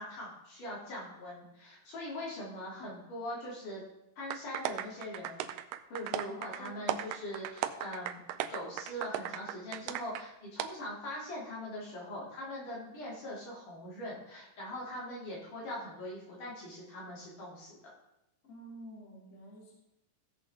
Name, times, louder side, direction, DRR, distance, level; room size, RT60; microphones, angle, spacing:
voice 1, 0.0-3.8 4.2-5.4 5.9-8.2 8.5-17.8, left 1 dB, 65° left, -5 dB, 4.7 m, -42 dB
sound 1, 4.3-10.2 10.6-10.7, right 12 dB, 85° right, 2.2 m, -37 dB
voice 2, 6.3-6.9 18.4-19.7, equal, 20° left, -4 dB, 2.9 m, -50 dB
15.5 x 8.0 x 3.7 m, 0.87 s
omnidirectional pair, 3.9 m